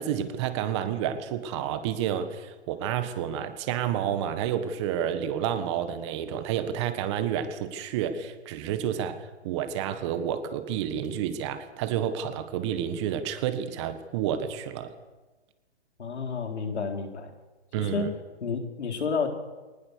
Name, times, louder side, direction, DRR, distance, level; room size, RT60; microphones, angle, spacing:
voice 1, 0.0-9.2 9.4-14.9 17.7-18.1, right 9 dB, 25° right, 9 dB, 1.6 m, -30 dB
voice 2, 16.0-17.3 17.8-18.1 18.4-19.3, left 5 dB, 80° left, 4 dB, 4.5 m, -30 dB
24.0 x 19.0 x 6.8 m, 1.2 s
hypercardioid pair, 155°, 33 cm